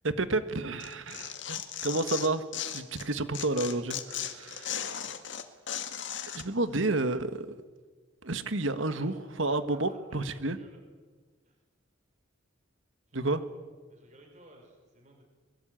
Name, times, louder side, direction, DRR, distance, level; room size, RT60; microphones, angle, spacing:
voice 1, 0.0-2.4 2.7-4.7 6.3-7.5 8.2-10.6 13.1-13.4, right 2 dB, 75° right, 11 dB, 1.7 m, -30 dB
Tearing, 0.8-3.1 3.3-6.4, left 9 dB, 65° left, 2.1 m, -36 dB
voice 2, 4.4-5.2 8.9-10.8 11.4-11.6 13.1-13.6 13.9-15.2, right 1 dB, 35° right, 2 dB, 5.3 m, -57 dB
23.0 x 23.0 x 9.2 m, 1.4 s
head